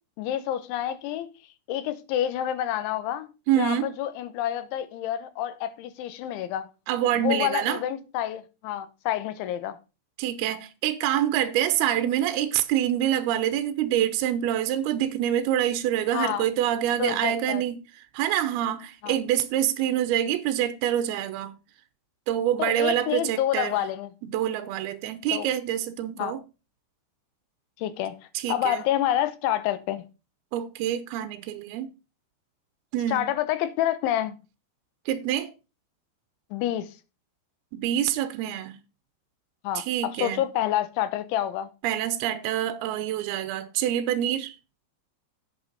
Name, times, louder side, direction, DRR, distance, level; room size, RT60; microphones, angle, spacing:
voice 1, 0.2-1.3 1.7-3.3 3.6-6.7 7.2-9.8 16.1-16.5 17.0-17.6 19.0-19.2 22.6-24.1 25.3-25.5 26.2-26.3 27.8-28.2 28.5-30.1 33.1-34.4 36.5-36.9 39.6-39.8 40.2-41.7, left 12 dB, 80° left, 3.3 m, -28 dB
voice 2, 3.5-3.9 6.9-7.8 10.2-17.8 18.1-21.5 22.3-23.8 24.2-26.4 28.3-28.8 30.5-31.9 32.9-33.3 35.1-35.5 37.7-38.8 39.8-40.4 41.8-44.6, right 11 dB, 80° right, 2.3 m, -26 dB
10.5 x 8.2 x 4.0 m
omnidirectional pair, 5.4 m